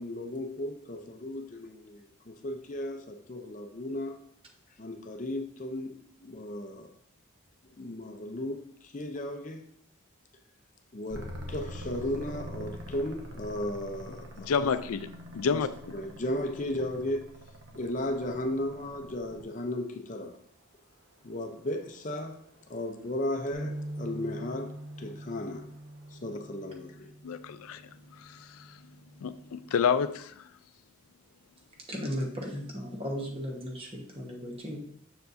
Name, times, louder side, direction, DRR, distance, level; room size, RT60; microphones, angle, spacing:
voice 1, 0.0-4.2 4.8-5.9 6.2-6.9 7.8-9.6 10.9-14.7 15.5-15.6 15.9-17.3 17.7-20.4 21.2-22.4 22.7-25.7 26.1-27.1, left 1 dB, 35° left, 0.6 m, -35 dB
sound 1, 11.1-19.6 21.9-26.4, equal, 60° right, 1.2 m, -45 dB
voice 2, 14.4-15.1 15.3-15.7 27.2-27.8 28.1-28.8 29.2-30.5, left 6 dB, 90° left, 0.4 m, -29 dB
sound 2, 23.5-29.8, right 1 dB, 80° right, 0.9 m, -44 dB
voice 3, 31.9-34.8, equal, 25° right, 1.2 m, -36 dB
7.0 x 6.6 x 2.6 m
head